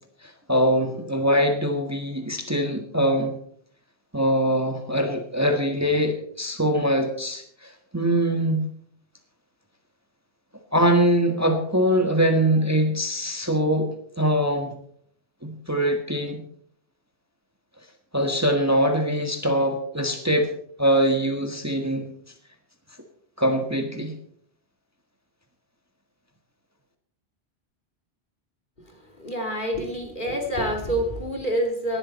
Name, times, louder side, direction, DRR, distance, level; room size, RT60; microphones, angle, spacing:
voice 1, 0.2-3.4 4.1-8.7 10.7-14.7 15.4-16.4 18.1-20.5 20.8-22.1 23.4-24.2, equal, 15° right, 5 dB, 1.5 m, -23 dB
voice 2, 29.2-32.0, equal, 50° left, 3 dB, 2.8 m, -27 dB
18.0 x 12.5 x 4.2 m, 0.63 s
omnidirectional pair, 1.1 m